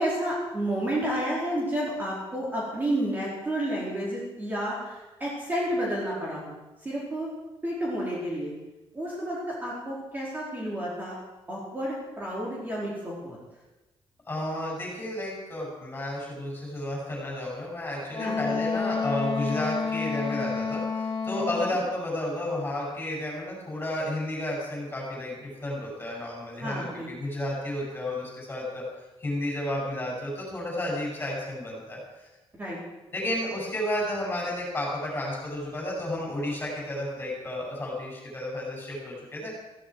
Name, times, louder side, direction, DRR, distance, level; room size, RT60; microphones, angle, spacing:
voice 1, 0.0-6.5 6.8-7.3 7.6-8.5 8.9-11.2 11.5-13.4 18.2-18.5 21.6-21.8 26.6-27.1 32.6-32.8, right 1 dB, 15° right, -6 dB, 4.1 m, -31 dB
voice 2, 14.3-28.8 29.2-32.3 33.1-39.5, left 1 dB, 20° left, -3 dB, 6.7 m, -32 dB
Wind instrument woodwind instrument, 18.1-21.8, left 5 dB, 40° left, 2.0 m, -29 dB
16.0 x 15.5 x 4.7 m, 1.1 s
cardioid pair, 170°, 11 cm